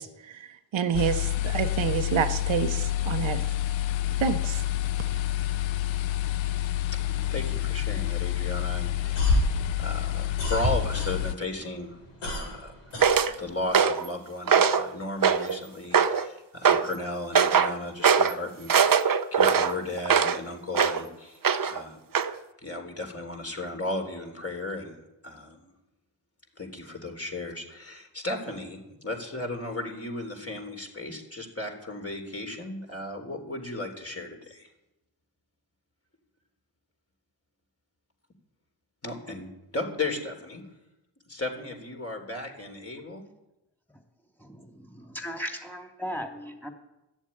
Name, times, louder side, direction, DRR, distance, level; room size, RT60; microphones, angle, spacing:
voice 1, 0.0-3.4 4.2-4.6, right 8 dB, 65° right, 7 dB, 1.1 m, -28 dB
sound 1, 0.9-11.4, left 14 dB, 65° left, 0.6 m, -28 dB
voice 2, 6.9-12.8 13.4-21.4 21.7-22.0 22.6-24.9 25.2-25.7 26.6-34.7 39.0-40.6 41.3-43.3, left 2 dB, 30° left, 2 dB, 3.8 m, -35 dB
sound 2, 8.9-11.5 11.8-13.7, left 1 dB, 85° left, 4.5 m, -28 dB
sound 3, 13.0-13.3 13.7-14.1 14.5-14.9 15.2-15.6 15.9-16.3 16.7-16.9 17.4-17.7 18.0-18.3 18.7-20.4 20.7-21.0 21.4-21.8 22.2-22.3, right 7 dB, 40° right, 0.9 m, -21 dB
voice 3, 44.4-46.7, equal, 5° left, 4 dB, 3.2 m, -37 dB
13.5 x 7.2 x 9.9 m, 0.92 s
supercardioid pair, 50°, 49 cm